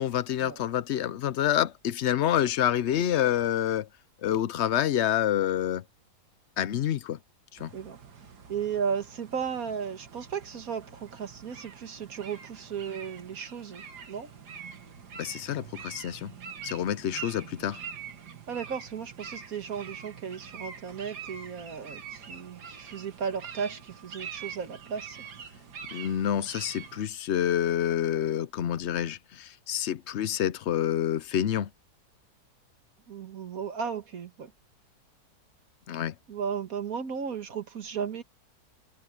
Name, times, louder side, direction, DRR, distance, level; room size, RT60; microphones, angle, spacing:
voice 1, 0.0-3.9 4.2-5.8 6.6-7.2 7.6-7.7 15.2-16.3 16.6-17.8 25.9-31.7 35.9-36.1, left 10 dB, 60° left, 0.7 m, -27 dB
sound 1, 7.6-27.1, right 7 dB, 90° right, 2.3 m, -45 dB
voice 2, 8.5-14.3 18.5-25.3 33.1-34.5 36.3-38.2, right 7 dB, 60° right, 1.9 m, -35 dB
omnidirectional pair, 1.7 m